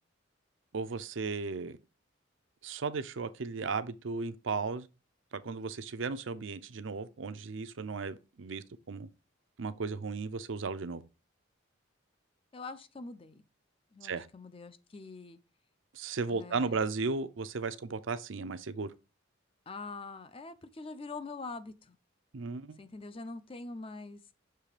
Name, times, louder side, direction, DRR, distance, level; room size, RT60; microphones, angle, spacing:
voice 1, 0.7-1.8 2.6-4.9 5.3-9.1 9.6-11.0 14.0-14.3 15.9-18.9 22.3-22.8, right 4 dB, 70° right, 0.6 m, -35 dB
voice 2, 12.5-13.5 13.9-15.4 16.3-16.9 19.7-22.0 22.8-24.2, left 3 dB, 30° left, 0.5 m, -44 dB
6.8 x 3.3 x 4.9 m
head